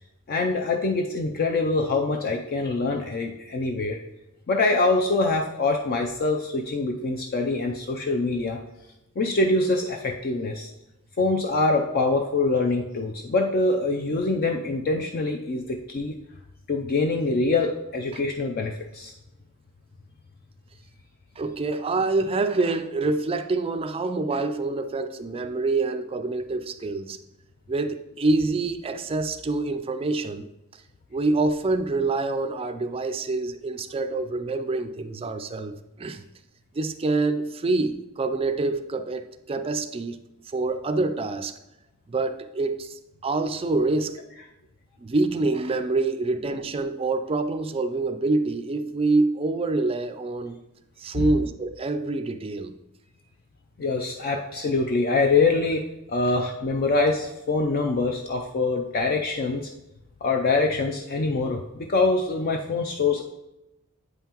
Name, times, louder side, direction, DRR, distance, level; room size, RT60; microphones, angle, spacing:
voice 1, 0.3-4.0 4.5-8.6 9.2-10.7 11.2-16.1 16.7-19.1 51.1-51.2 53.8-59.7 60.2-63.2, left 3 dB, 45° left, 0.4 m, -24 dB
voice 2, 21.4-27.2 27.7-30.5 31.1-36.2 36.7-40.2 40.5-41.5 42.1-44.2 45.0-50.6 51.0-52.7, right 3 dB, 25° right, 0.4 m, -26 dB
8.0 x 5.6 x 2.9 m
head